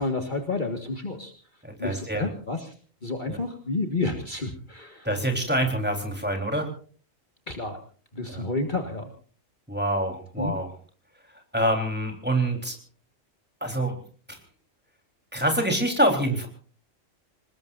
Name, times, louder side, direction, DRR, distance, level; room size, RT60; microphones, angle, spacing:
voice 1, 0.0-1.3 1.8-2.7 3.0-5.1 7.5-7.8 8.1-9.1 10.4-10.5, left 3 dB, 35° left, 4 dB, 1.9 m, -30 dB
voice 2, 1.6-2.3 3.3-3.4 5.0-6.7 8.3-8.4 9.7-10.7 11.5-12.8 13.6-14.0 14.3-14.4 15.3-16.5, right 1 dB, 5° right, 2 dB, 3.8 m, -26 dB
27.5 x 20.0 x 2.6 m, 0.41 s
omnidirectional pair, 1.4 m